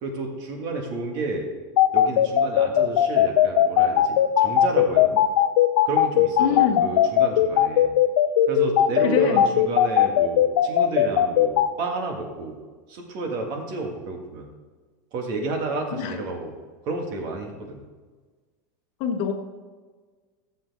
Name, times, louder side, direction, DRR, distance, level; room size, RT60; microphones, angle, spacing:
voice 1, 0.0-1.5 1.9-5.2 5.8-7.9 8.5-12.6 12.9-14.5 15.1-16.5 16.8-17.8, right 3 dB, 40° right, 2 dB, 1.8 m, -31 dB
sound 1, 1.8-11.7, left 12 dB, 85° left, 0.6 m, -17 dB
voice 2, 6.4-6.9 9.0-9.4 15.9-16.2 19.0-19.3, left 7 dB, 45° left, 5 dB, 1.2 m, -25 dB
13.5 x 7.1 x 3.5 m, 1.4 s
supercardioid pair, 155°, 11 cm